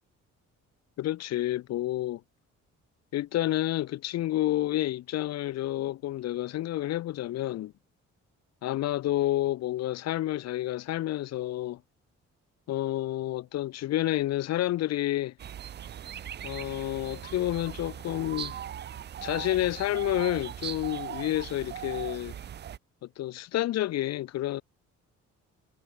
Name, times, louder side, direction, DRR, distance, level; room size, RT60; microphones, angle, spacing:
voice 1, 1.0-2.2 3.1-7.7 8.6-11.8 12.7-15.3 16.4-18.5 19.2-22.3 23.2-24.6, left 14 dB, 60° left, 0.5 m, -29 dB
sound 1, 15.4-22.8, right 9 dB, 35° right, 0.4 m, -39 dB
cardioid pair, 90°, 30 cm